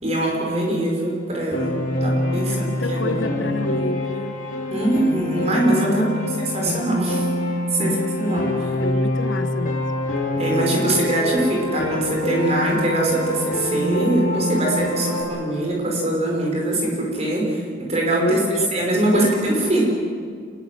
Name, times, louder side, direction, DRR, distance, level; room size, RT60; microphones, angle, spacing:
voice 1, 0.0-3.4 4.7-6.1 6.5-7.3 7.7-8.7 10.4-18.4 18.7-19.8, right 1 dB, 35° right, -1 dB, 5.6 m, -22 dB
Piano, 1.5-15.2, left 1 dB, 45° left, 5.6 m, -25 dB
voice 2, 2.4-4.4 5.9-6.3 6.7-6.9 7.8-9.9 15.0-15.2 18.2-18.7 19.1-19.3, left 1 dB, 85° left, 10 dB, 1.3 m, -29 dB
26.5 x 20.5 x 7.7 m, 2.1 s
head